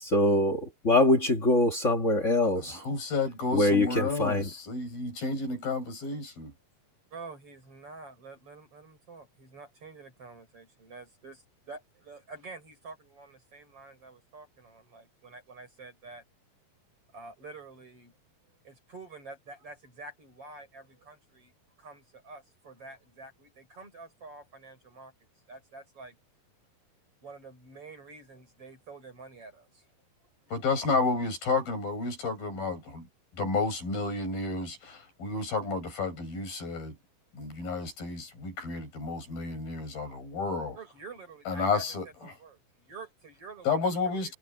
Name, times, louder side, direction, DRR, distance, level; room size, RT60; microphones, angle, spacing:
voice 1, 0.0-2.8 3.5-3.9 4.2-4.4, left 2 dB, 35° left, 1.2 m, -23 dB
voice 2, 2.6-6.5 30.5-33.1 33.3-37.0 37.3-40.8 41.5-42.3 43.7-44.3, left 3 dB, 90° left, 9.3 m, -31 dB
voice 3, 7.1-16.2 17.1-18.1 18.6-21.5 21.8-25.1 25.5-26.2 27.2-29.9 40.8-41.8 42.2-44.3, right 3 dB, 40° right, 7.3 m, -48 dB
omnidirectional pair, 4.1 m